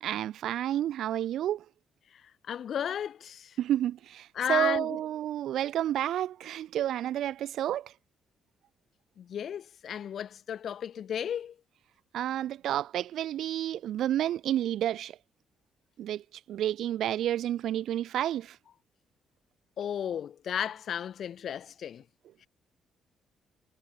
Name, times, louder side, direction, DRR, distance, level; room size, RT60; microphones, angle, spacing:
voice 1, 0.0-1.6 3.6-7.9 12.1-15.2 16.0-16.2 16.5-18.6, right 12 dB, 75° right, 0.7 m, -30 dB
voice 2, 2.5-3.5 4.4-5.0 9.2-11.5 19.8-22.0, left 9 dB, 60° left, 2.2 m, -34 dB
cardioid pair, 90°, 0 cm